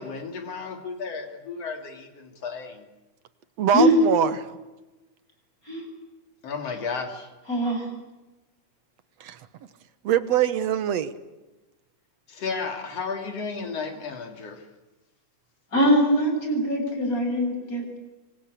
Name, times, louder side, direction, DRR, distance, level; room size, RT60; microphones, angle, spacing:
voice 1, 0.0-2.9 6.4-7.3 12.3-14.6, left 5 dB, 50° left, 5 dB, 4.0 m, -33 dB
voice 2, 3.6-4.5 9.2-9.4 10.0-11.1, right 9 dB, 60° right, 13 dB, 2.1 m, -23 dB
voice 3, 7.5-7.9 15.7-18.0, equal, 25° left, 3 dB, 7.9 m, -22 dB
26.5 x 25.5 x 8.4 m, 1.1 s
omnidirectional pair, 3.7 m